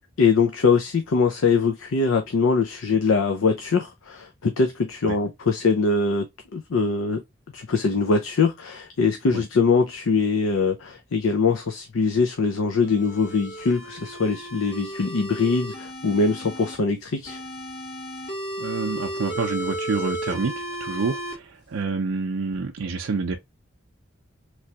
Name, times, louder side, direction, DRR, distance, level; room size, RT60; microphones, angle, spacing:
voice 1, 0.2-6.3 6.5-7.2 7.5-17.4, left 4 dB, 90° left, 0.5 m, -22 dB
sound 1, 12.8-16.8 17.3-21.3, right 1 dB, 50° left, 1.6 m, -34 dB
voice 2, 18.6-23.4, right 4 dB, 90° right, 0.5 m, -28 dB
3.3 x 3.0 x 2.8 m
head